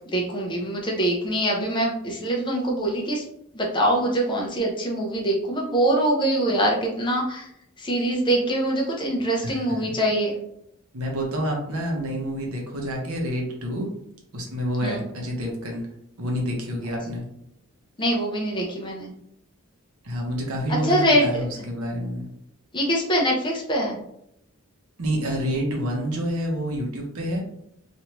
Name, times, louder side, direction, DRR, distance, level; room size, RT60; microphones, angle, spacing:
voice 1, 0.1-3.2 3.5-7.4 7.8-10.3 14.8-15.0 18.0-19.1 20.7-21.4 22.7-24.0, right 1 dB, 20° left, -1 dB, 0.6 m, -23 dB
voice 2, 9.4-9.9 10.9-13.9 14.3-15.9 16.2-17.2 20.0-22.3 25.0-27.4, equal, 85° right, 0 dB, 0.9 m, -28 dB
3.2 x 2.6 x 2.9 m, 0.75 s
head